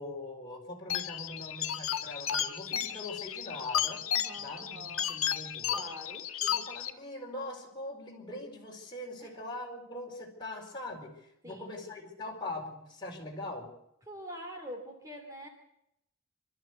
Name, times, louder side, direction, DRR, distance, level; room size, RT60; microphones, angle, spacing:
voice 1, 0.0-4.0 4.3-5.9 6.4-13.7, left 2 dB, 20° left, -1 dB, 4.6 m, -42 dB
sound 1, 0.9-6.9, left 9 dB, 90° left, 1.4 m, -33 dB
voice 2, 4.1-5.1 5.7-6.3 9.2-9.4 11.4-11.7 14.1-15.5, equal, 15° right, 3 dB, 2.7 m, -45 dB
25.5 x 13.0 x 8.2 m, 0.80 s
head